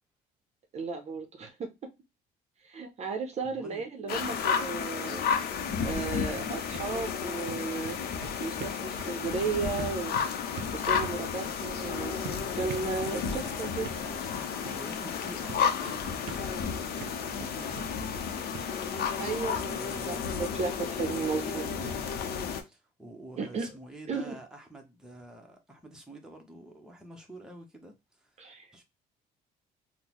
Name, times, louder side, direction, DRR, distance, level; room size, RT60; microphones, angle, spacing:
voice 1, 0.7-1.5 2.6-5.2 5.8-8.0 8.4-10.1 10.7-12.2 12.5-13.9 19.2-19.7 20.1-21.6 23.4-23.7 24.1-24.4 28.4-28.7, right 4 dB, 40° right, 0.6 m, -34 dB
voice 2, 3.4-3.9 13.1-13.5 14.0-14.2 14.6-18.0 19.6-20.5 21.0-28.4 28.7-28.8, right 1 dB, 5° right, 0.7 m, -48 dB
sound 1, 4.1-22.6, left 6 dB, 65° left, 0.6 m, -32 dB
sound 2, 6.4-19.2 19.4-19.6 20.0-20.1 20.4-20.5, right 8 dB, 85° right, 0.4 m, -47 dB
3.6 x 2.0 x 2.9 m
cardioid pair, 110°, 17 cm